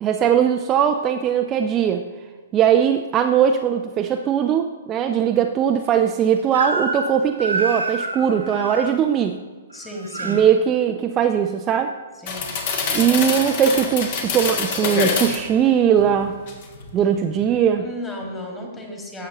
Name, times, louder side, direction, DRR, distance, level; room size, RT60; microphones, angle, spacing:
voice 1, 0.0-2.0 2.5-9.4 10.2-11.9 12.9-16.3 16.9-17.8, right 8 dB, 25° right, 5 dB, 0.4 m, -20 dB
Crying sobbing / Screech, 6.5-7.1 7.4-8.9 9.7-10.4, right 2 dB, 85° right, 1.5 m, -27 dB
voice 2, 9.7-10.5 12.2-12.7 13.0-13.3 17.3-17.4 17.8-19.3, left 1 dB, 15° left, 1 dB, 1.9 m, -34 dB
sound 1, 12.3-15.5 16.0-16.9 17.3-17.5, left 5 dB, 45° left, 1.3 m, -25 dB
11.5 x 7.5 x 3.0 m, 1.4 s
figure-of-eight pair, 115°, 0 cm